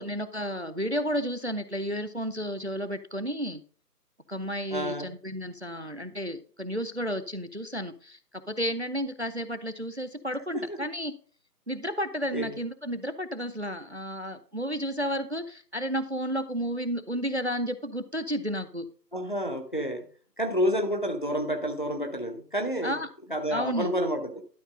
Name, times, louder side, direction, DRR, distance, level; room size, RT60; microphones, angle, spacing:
voice 1, 0.0-3.6 4.3-8.2 8.5-11.1 11.7-18.9 22.8-23.1 23.5-23.9, equal, 45° right, 12 dB, 0.5 m, -32 dB
voice 2, 4.7-5.1 10.5-10.8 12.3-12.6 19.1-20.1 20.4-23.0 23.3-24.4, equal, 30° left, 5 dB, 0.8 m, -29 dB
12.0 x 4.5 x 5.1 m, 0.42 s
figure-of-eight pair, 170°, 49 cm